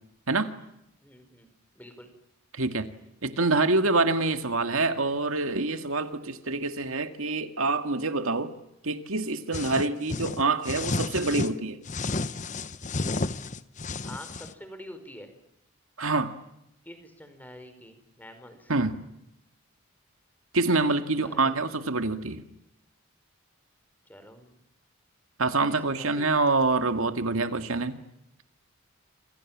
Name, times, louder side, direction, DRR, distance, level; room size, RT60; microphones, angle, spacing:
voice 1, 1.0-1.5 1.7-2.1 14.0-15.3 16.8-18.7 21.2-21.6 24.1-24.6 25.6-26.3, equal, 10° left, 8 dB, 4.9 m, -46 dB
voice 2, 2.5-2.9 3.2-8.5 8.8-11.8 16.0-16.4 18.7-19.0 20.5-22.4 25.4-28.0, right 3 dB, 75° right, 8 dB, 2.1 m, -26 dB
sound 1, 9.5-11.5 11.9-14.5, left 3 dB, 35° left, 1.0 m, -31 dB
28.0 x 27.5 x 7.5 m, 0.83 s
head